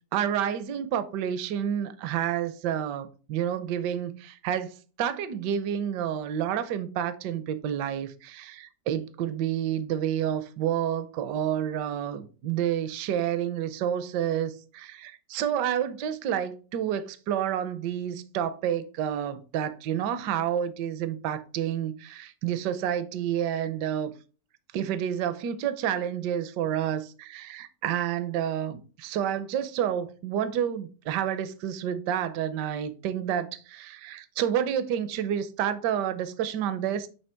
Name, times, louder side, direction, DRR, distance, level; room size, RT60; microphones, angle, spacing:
voice 1, 0.1-24.1 24.7-37.1, right 9 dB, 70° right, 1.2 m, -29 dB
7.7 x 3.2 x 4.4 m
omnidirectional pair, 2.1 m